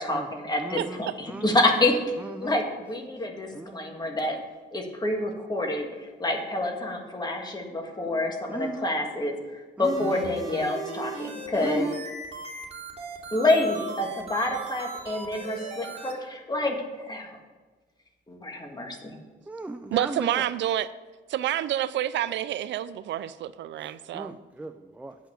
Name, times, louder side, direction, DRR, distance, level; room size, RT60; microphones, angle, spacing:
voice 1, 0.0-1.1 1.4-2.0 2.4-4.4 4.7-5.9 6.2-9.4 9.8-11.9 13.3-17.3 18.3-19.2, left 2 dB, 20° left, 2 dB, 1.7 m, -27 dB
voice 2, 0.6-1.6 2.2-2.6 3.5-3.9 8.5-8.9 9.8-10.2 11.6-12.0 19.5-20.4 23.8-25.2, right 2 dB, 5° right, 8 dB, 0.4 m, -36 dB
sound 1, 9.8-16.1, right 3 dB, 35° right, 3.2 m, -37 dB
voice 3, 19.9-20.9 21.3-24.4, right 12 dB, 80° right, 15 dB, 0.4 m, -28 dB
8.7 x 5.8 x 7.1 m, 1.3 s
cardioid pair, 105°, 19 cm